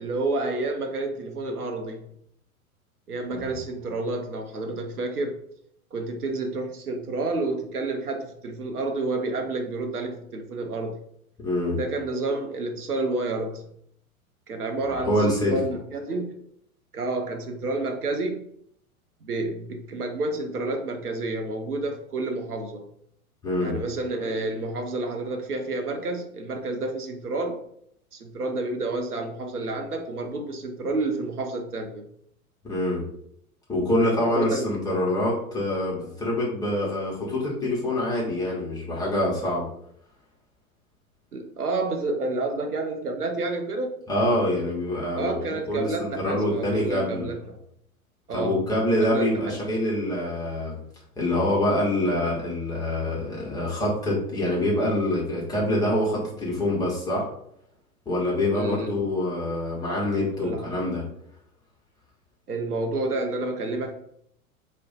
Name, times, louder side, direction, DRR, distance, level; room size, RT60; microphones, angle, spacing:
voice 1, 0.0-2.1 3.1-5.4 5.9-11.0 11.7-13.6 14.5-16.4 16.9-18.5 19.2-22.9 23.6-27.6 28.1-32.1 34.1-34.8 41.3-43.9 45.2-47.6 48.3-48.6 49.0-49.6 58.5-59.0 60.4-60.9 62.5-63.9, right 2 dB, 90° right, 4 dB, 0.6 m, -29 dB
voice 2, 11.4-11.8 15.0-15.6 23.4-23.8 32.6-33.0 33.7-39.7 44.1-47.3 48.3-50.7 51.2-57.3 58.1-61.0, left 1 dB, 10° left, -5 dB, 0.8 m, -25 dB
2.4 x 2.1 x 3.8 m, 0.70 s
figure-of-eight pair, 95°, 44 cm